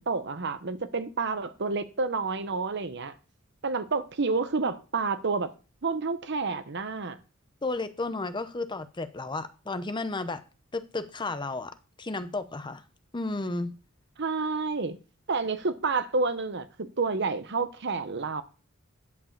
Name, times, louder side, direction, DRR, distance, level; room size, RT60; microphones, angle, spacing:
voice 1, 0.0-3.1 3.6-5.5 5.8-7.2 14.2-15.0 15.3-18.4, right 4 dB, 55° right, 0.9 m, -29 dB
voice 2, 7.6-10.4 10.7-12.8 13.1-13.7, left 2 dB, 20° left, 0.7 m, -33 dB
11.0 x 4.7 x 7.3 m
head